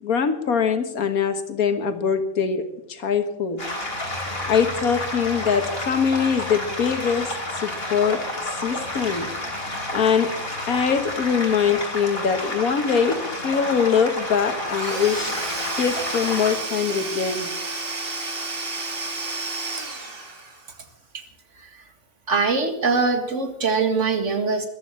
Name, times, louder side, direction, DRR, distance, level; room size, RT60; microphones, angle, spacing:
voice 1, 0.0-3.6 4.5-8.2 8.6-9.3 9.9-10.3 10.7-15.3 15.7-17.5, left 6 dB, 90° left, 9 dB, 1.9 m, -23 dB
sound 1, 3.6-16.6, left 1 dB, 45° left, 3.9 m, -30 dB
Domestic sounds home sounds / Tools, 14.7-20.8, right 3 dB, 40° right, 2.1 m, -31 dB
voice 2, 22.3-24.7, right 4 dB, 60° right, 7 dB, 2.3 m, -23 dB
14.5 x 12.0 x 7.5 m, 0.85 s
omnidirectional pair, 1.5 m